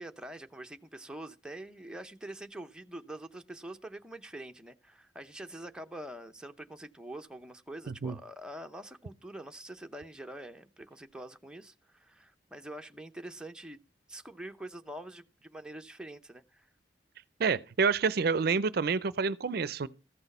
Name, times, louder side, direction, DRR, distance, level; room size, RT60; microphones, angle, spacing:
voice 1, 0.0-13.8 14.1-16.7, right 1 dB, 5° right, 0.6 m, -45 dB
voice 2, 17.4-19.9, right 5 dB, 55° right, 0.5 m, -28 dB
14.0 x 6.1 x 5.4 m
head